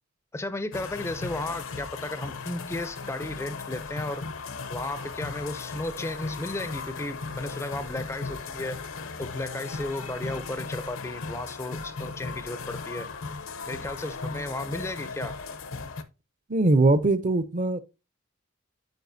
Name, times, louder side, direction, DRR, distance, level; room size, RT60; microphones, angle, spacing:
voice 1, 0.3-4.3 4.7-8.8 9.2-13.1 13.7-15.4, left 2 dB, 15° left, 0.4 m, -34 dB
sound 1, 0.7-16.0, left 4 dB, 70° left, 0.7 m, -37 dB
voice 2, 16.5-17.8, right 2 dB, 35° right, 0.5 m, -21 dB
9.1 x 5.4 x 2.6 m
head